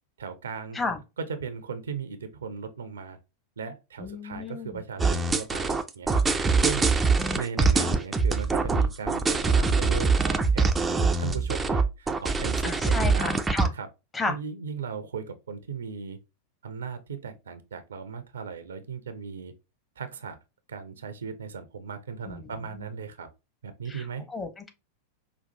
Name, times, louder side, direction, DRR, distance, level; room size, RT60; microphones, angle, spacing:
voice 1, 0.2-0.8 1.2-3.2 3.6-6.2 6.6-6.9 7.3-10.7 11.2-13.3 13.7-13.9 14.3-16.2 16.6-19.5 20.0-20.4 20.7-23.3 23.6-24.3, right 6 dB, 65° right, 0.6 m, -37 dB
voice 2, 4.0-4.8 12.6-13.7 14.1-14.4 22.3-22.9 23.9-24.7, left 3 dB, 15° left, 1.0 m, -33 dB
sound 1, 5.0-13.7, right 4 dB, 15° right, 0.5 m, -23 dB
5.2 x 2.5 x 2.6 m
figure-of-eight pair, 90°, 0 cm